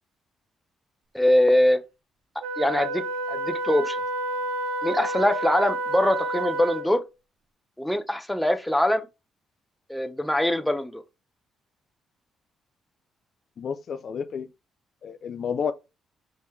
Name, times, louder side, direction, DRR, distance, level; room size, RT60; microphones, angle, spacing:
voice 1, 1.1-1.8 2.6-4.0 4.8-7.0 7.8-9.1 9.9-11.0, left 1 dB, 5° left, 0.7 m, -23 dB
Wind instrument woodwind instrument, 2.4-7.0, right 1 dB, 85° right, 0.8 m, -30 dB
voice 2, 13.6-14.5 15.0-15.7, left 6 dB, 55° left, 0.4 m, -30 dB
5.2 x 3.1 x 3.3 m
cardioid pair, 90°, 0 cm